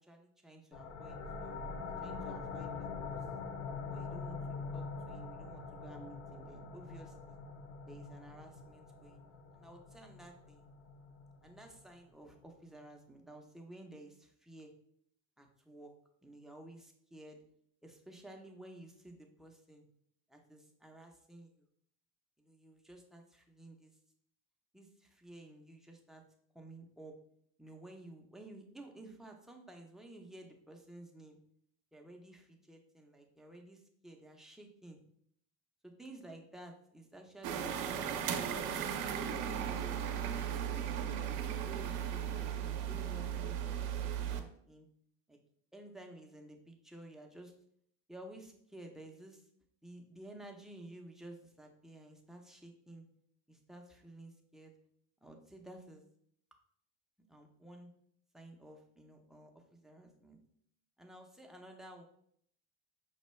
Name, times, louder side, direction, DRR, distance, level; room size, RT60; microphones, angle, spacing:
voice 1, 0.0-3.2 3.9-7.4 7.9-10.7 11.4-14.8 15.4-15.9 16.2-17.4 17.8-19.9 20.3-21.6 22.4-24.0 24.7-26.2 26.5-27.2 27.6-31.4 31.9-35.0 35.8-38.9 41.5-43.8 44.3-44.9 45.3-45.4 45.7-47.5 48.1-49.5 49.8-53.0 53.5-54.7 55.2-56.0 57.3-57.9 58.3-60.4 61.0-62.0, right 1 dB, ahead, 1 dB, 0.4 m, -53 dB
sound 1, 0.7-12.1, left 4 dB, 45° left, 0.6 m, -44 dB
sound 2, 37.4-44.4, right 9 dB, 65° right, 0.6 m, -36 dB
5.3 x 2.2 x 3.1 m, 0.66 s
cardioid pair, 125°, 36 cm